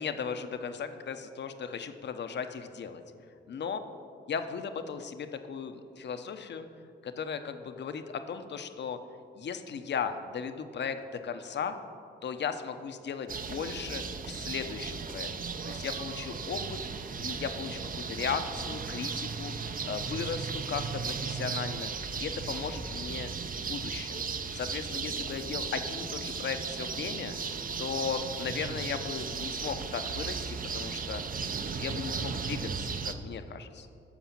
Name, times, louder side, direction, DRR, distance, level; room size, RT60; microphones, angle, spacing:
voice 1, 0.0-3.0 3.5-3.8 4.3-6.7 7.0-9.0 9.4-11.8 12.2-15.3 15.6-16.8 17.2-17.8 18.1-23.3 23.6-24.2 24.5-31.2 31.6-33.9, left 6 dB, 60° left, 9 dB, 0.8 m, -36 dB
sound 1, 13.3-33.1, right 5 dB, 45° right, 0.8 m, -36 dB
13.0 x 5.0 x 7.3 m, 2.5 s
cardioid pair, 75°, 20 cm